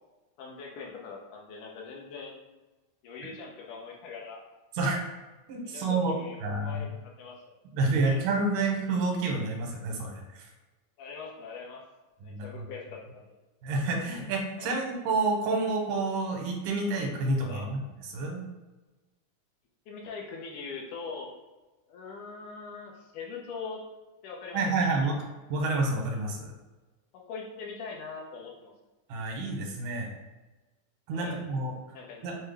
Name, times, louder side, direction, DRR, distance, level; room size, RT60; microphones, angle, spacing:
voice 1, 0.4-2.4 3.0-4.4 5.6-7.6 8.0-8.2 11.0-11.8 12.2-13.3 14.6-14.7 17.4-17.7 19.9-21.3 21.9-23.8 24.2-24.6 27.1-28.7 31.1-31.4 31.9-32.3, left 5 dB, 75° left, -1 dB, 2.2 m, -42 dB
voice 2, 5.5-6.9 7.7-10.5 12.2-12.6 13.6-17.8 18.1-18.5 24.5-25.2 25.5-26.5 29.1-30.1 31.1-31.7 32.2-32.4, right 3 dB, 90° right, 1 dB, 2.4 m, -29 dB
6.4 x 2.2 x 3.3 m, 1.2 s
omnidirectional pair, 3.6 m